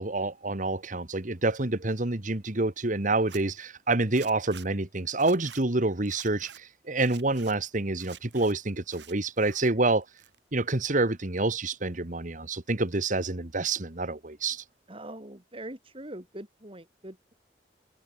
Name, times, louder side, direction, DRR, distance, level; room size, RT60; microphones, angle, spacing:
voice 1, 0.0-10.0 10.5-14.6, right 2 dB, 45° right, 1.7 m, -27 dB
Zipper (clothing), 3.1-3.4 4.1-4.7 5.1-5.6 6.0-6.6 7.0-7.5 7.9-8.5 8.9-9.7 10.0-10.6, right 9 dB, 80° right, 4.4 m, -48 dB
voice 2, 14.9-17.3, right 1 dB, 30° right, 5.6 m, -43 dB
open air
head